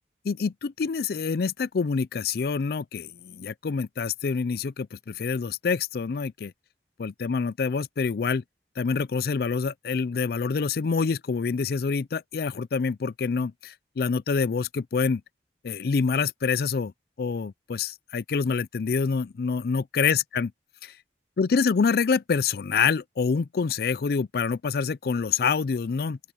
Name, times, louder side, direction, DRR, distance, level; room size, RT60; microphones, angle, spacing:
voice 1, 0.2-6.5 7.0-8.4 8.8-15.2 15.6-16.9 17.2-20.5 20.8-20.9 21.4-26.2, left 5 dB, 60° left, 0.4 m, -26 dB
open air
head